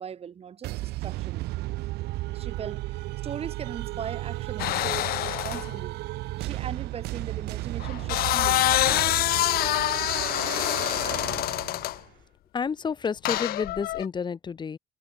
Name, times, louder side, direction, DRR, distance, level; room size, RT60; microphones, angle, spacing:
voice 1, 0.0-1.5 2.3-6.0 6.4-9.2, right 8 dB, 35° right, 0.8 m, -39 dB
sound 1, 0.6-12.0, right 19 dB, 75° right, 0.5 m, -34 dB
sound 2, 4.6-5.7 7.8-12.0 13.3-14.1, left 16 dB, 65° left, 0.4 m, -26 dB
voice 2, 12.5-14.8, left 6 dB, 25° left, 0.6 m, -30 dB
cardioid pair, 110°, 17 cm